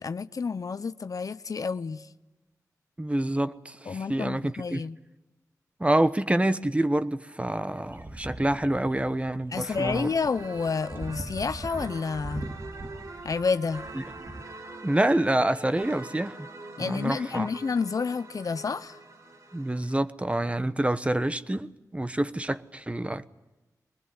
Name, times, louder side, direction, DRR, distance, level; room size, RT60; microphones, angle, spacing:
voice 1, 0.0-2.1 3.9-5.0 9.5-12.5 13.2-13.8 16.8-19.0, left 5 dB, 65° left, 0.7 m, -30 dB
voice 2, 3.0-4.8 5.8-10.1 13.9-14.0 14.8-16.5 16.8-17.5 19.5-23.3, right 1 dB, 20° right, 1.1 m, -27 dB
sound 1, 7.7-14.4, right 1 dB, 40° right, 1.8 m, -41 dB
sound 2, 9.6-20.0, right 2 dB, 65° right, 5.5 m, -44 dB
23.0 x 20.5 x 9.6 m
cardioid pair, 50°, 7 cm